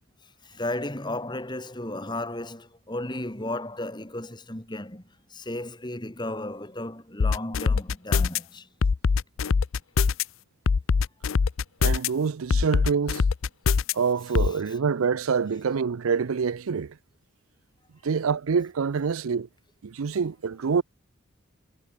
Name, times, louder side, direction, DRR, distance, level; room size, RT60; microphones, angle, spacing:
voice 1, 0.4-5.0 5.3-8.7, left 1 dB, 20° left, 2.3 m, -34 dB
sound 1, 7.2-8.4 8.8-10.2 10.7-12.1 12.5-13.9 14.3-14.5, left 5 dB, 80° left, 0.5 m, -22 dB
voice 2, 11.8-13.2 13.9-17.0 18.0-19.5 19.8-20.8, right 6 dB, 90° right, 0.5 m, -26 dB
head